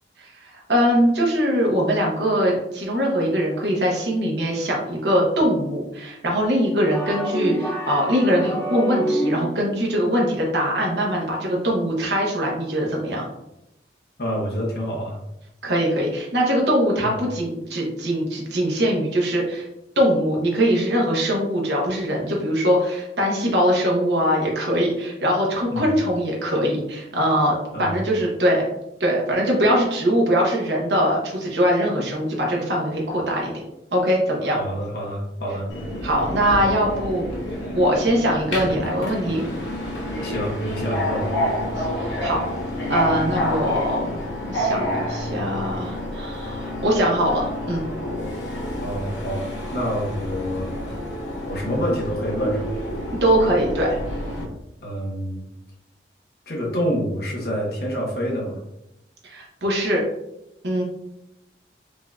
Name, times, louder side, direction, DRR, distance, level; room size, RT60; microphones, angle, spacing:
voice 1, 0.2-13.2 15.6-19.7 20.0-28.6 29.0-33.5 33.9-34.6 36.0-37.2 37.7-39.4 41.8-42.4 42.9-47.8 53.2-54.0 59.2-60.0 60.6-60.8, equal, 75° right, -2 dB, 1.0 m, -22 dB
sound 1, 6.9-9.8, equal, 10° left, 0.6 m, -27 dB
voice 2, 14.2-15.2 17.0-17.1 25.7-25.9 27.7-27.9 34.5-35.7 40.2-41.3 48.8-49.4 49.7-50.7 51.5-52.8 54.8-55.4 56.5-58.6, equal, 60° left, -2 dB, 1.1 m, -27 dB
Subway metro underground, 35.7-54.4, left 1 dB, 85° left, 1.0 m, -29 dB
5.3 x 2.7 x 2.3 m, 0.86 s
head